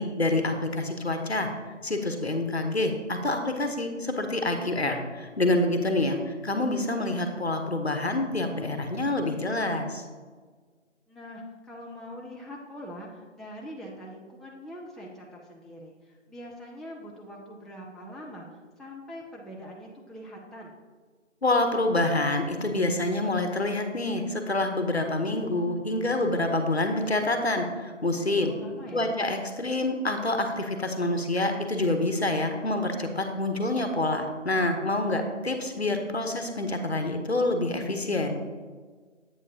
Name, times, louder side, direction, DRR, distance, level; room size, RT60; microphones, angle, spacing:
voice 1, 0.0-1.5 1.8-10.0 21.4-28.5 28.9-38.4, left 2 dB, 55° left, 5 dB, 0.9 m, -27 dB
voice 2, 11.1-20.8 28.5-29.1, equal, ahead, -3 dB, 0.4 m, -43 dB
8.2 x 6.8 x 2.7 m, 1.5 s
figure-of-eight pair, 175°, 37 cm